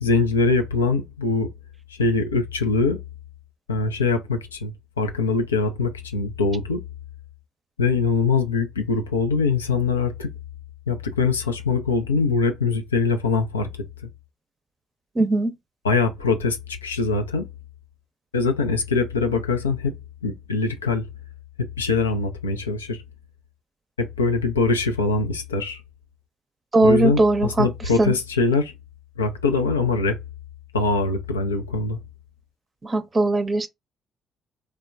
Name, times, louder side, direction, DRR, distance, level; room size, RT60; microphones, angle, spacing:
voice 1, 0.0-1.5 1.9-3.0 3.7-6.8 7.8-10.3 10.9-13.7 14.0-14.1 15.8-17.5 18.3-19.9 20.2-21.0 21.6-23.0 24.0-25.8 26.8-28.7 29.2-30.2 30.7-32.0, left 4 dB, 85° left, 0.4 m, -23 dB
voice 2, 15.2-15.5 26.7-27.7 28.0-28.2 32.8-33.7, right 2 dB, 30° right, 0.5 m, -19 dB
3.2 x 2.1 x 2.4 m
figure-of-eight pair, 45°, 0 cm